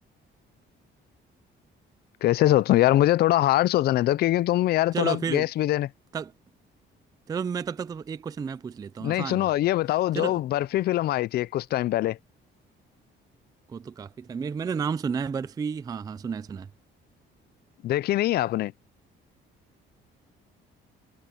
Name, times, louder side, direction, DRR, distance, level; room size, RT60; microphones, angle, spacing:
voice 1, 2.2-5.9 9.0-12.2 17.8-18.7, left 14 dB, 50° left, 0.4 m, -23 dB
voice 2, 4.9-5.5 6.1-6.3 7.3-9.5 10.1-10.4 13.7-16.7, right 6 dB, 20° right, 0.3 m, -31 dB
cardioid pair, 180°, 20 cm